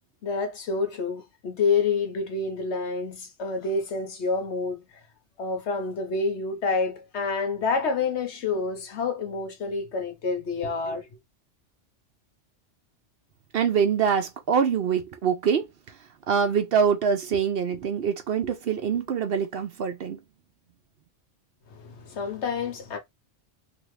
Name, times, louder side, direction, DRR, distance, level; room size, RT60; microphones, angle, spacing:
voice 1, 0.2-5.0 5.4-11.1 21.7-23.0, left 4 dB, 70° left, 1.1 m, -28 dB
voice 2, 13.5-15.7 16.3-20.2, right 7 dB, 60° right, 0.8 m, -24 dB
2.9 x 2.6 x 3.1 m
omnidirectional pair, 1.2 m